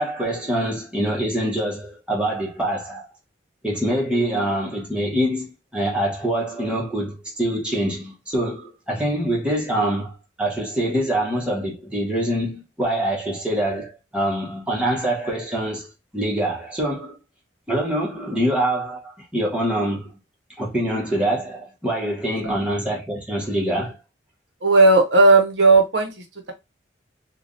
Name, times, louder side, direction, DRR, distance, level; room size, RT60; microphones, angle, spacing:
voice 1, 0.0-3.1 3.6-17.2 17.7-20.1 20.6-24.0, right 1 dB, 5° right, 1.1 m, -25 dB
voice 2, 24.6-26.1, right 3 dB, 70° right, 0.9 m, -15 dB
3.4 x 2.3 x 3.9 m
head